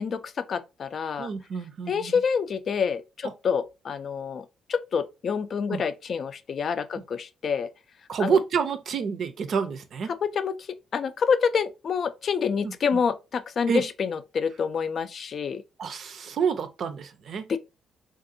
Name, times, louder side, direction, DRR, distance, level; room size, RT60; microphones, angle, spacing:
voice 1, 0.0-1.3 1.9-7.7 8.2-8.4 10.2-10.7 10.9-15.6 17.5-17.6, left 6 dB, 55° left, 0.4 m, -27 dB
voice 2, 1.2-2.2 5.7-5.8 7.0-7.1 8.1-10.1 12.6-13.0 13.7-13.8 15.8-17.5, right 6 dB, 60° right, 0.5 m, -28 dB
3.5 x 2.5 x 2.6 m
cardioid pair, 90°, 0 cm